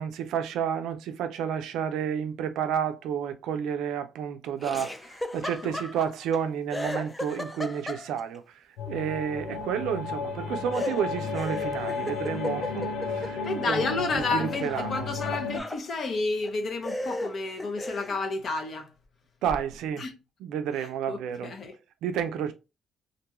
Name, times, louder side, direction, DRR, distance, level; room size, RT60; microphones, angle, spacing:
voice 1, 0.0-8.4 8.9-13.9 14.1-15.1 19.4-20.1 20.4-21.5 22.0-22.5, right 8 dB, 90° right, 0.4 m, -31 dB
Laughter, 4.6-6.4 6.7-8.4 10.7-13.9 14.2-15.8 16.4-16.5 16.8-18.2, left 1 dB, 15° left, 0.3 m, -36 dB
sound 1, 8.8-15.6, left 4 dB, 85° left, 0.8 m, -33 dB
voice 2, 13.4-18.9 20.0-20.1 20.8-21.8, left 3 dB, 55° left, 0.6 m, -31 dB
2.5 x 2.2 x 2.9 m
cardioid pair, 90°, 0 cm